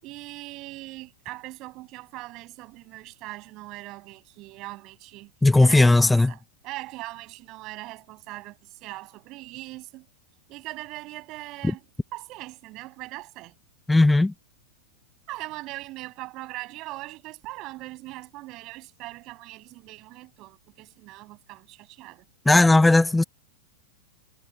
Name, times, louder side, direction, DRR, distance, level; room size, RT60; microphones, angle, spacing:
voice 1, 0.0-5.3 5.6-10.1 10.5-11.8 12.1-13.6 15.3-22.3, right 20 dB, 40° right, 7.3 m, -40 dB
voice 2, 5.4-6.3 13.9-14.3 22.4-23.2, left 2 dB, 5° left, 1.2 m, -17 dB
figure-of-eight pair, 95°, 0 cm